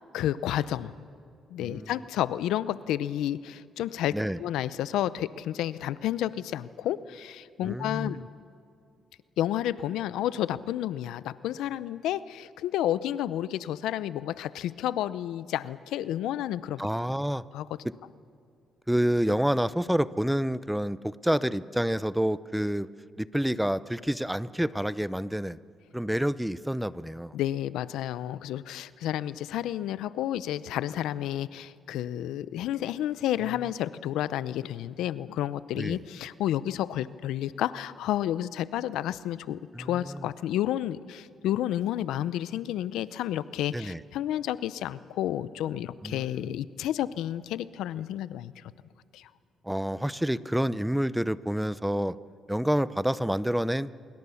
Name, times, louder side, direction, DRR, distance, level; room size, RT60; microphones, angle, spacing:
voice 1, 0.1-0.9 1.5-8.2 9.4-16.8 17.5-17.7 27.3-48.6 49.1-49.3, left 12 dB, 85° left, 16 dB, 0.6 m, -31 dB
voice 2, 1.6-1.9 4.1-4.4 7.6-8.2 16.8-17.4 18.9-22.9 23.2-25.6 25.9-27.4 35.8-36.0 39.7-40.3 43.7-44.0 46.0-46.5 49.6-52.2 52.5-53.9, equal, 5° right, 17 dB, 0.6 m, -28 dB
26.0 x 22.5 x 7.1 m, 2.3 s
cardioid pair, 90°, 0 cm